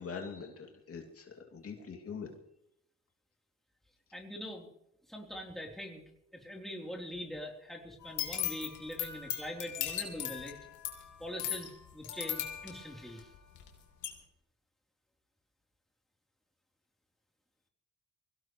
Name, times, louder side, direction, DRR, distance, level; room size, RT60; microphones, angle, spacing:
voice 1, 0.0-2.3, left 5 dB, 50° left, 2 dB, 2.7 m, -43 dB
voice 2, 4.1-4.7 5.1-6.0 6.3-10.6 11.2-13.3, equal, ahead, 0 dB, 3.6 m, -43 dB
sound 1, 8.0-13.7 14.0-14.1, left 10 dB, 85° left, 3.2 m, -38 dB
23.5 x 17.0 x 3.2 m, 0.79 s
cardioid pair, 90°, 30 cm